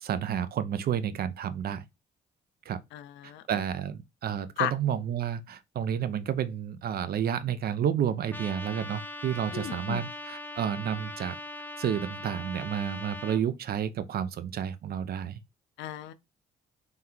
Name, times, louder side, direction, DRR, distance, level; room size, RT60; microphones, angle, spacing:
voice 1, 0.0-1.8 2.7-2.8 3.2-11.4 11.8-15.4, right 9 dB, 55° right, 0.4 m, -30 dB
voice 2, 2.9-3.6 4.6-4.7 9.5-10.0 15.8-16.1, left 12 dB, 70° left, 0.4 m, -34 dB
Trumpet, 8.3-13.4, left 1 dB, 10° left, 0.5 m, -40 dB
3.5 x 2.2 x 2.9 m
hypercardioid pair, 50°, 20 cm